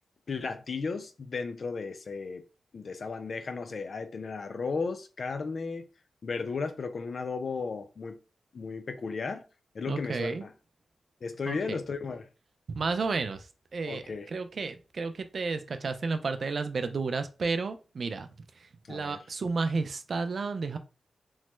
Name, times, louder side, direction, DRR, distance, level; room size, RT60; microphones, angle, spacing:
voice 1, 0.3-2.4 2.7-5.9 6.2-8.2 8.5-9.5 9.7-10.5 11.2-12.3 13.9-14.3 18.9-19.2, left 4 dB, 60° left, 0.4 m, -35 dB
voice 2, 9.9-10.4 11.5-11.8 12.7-18.3 18.6-20.8, right 4 dB, 60° right, 0.4 m, -32 dB
3.1 x 2.1 x 3.1 m
wide cardioid pair, 95°, 0 cm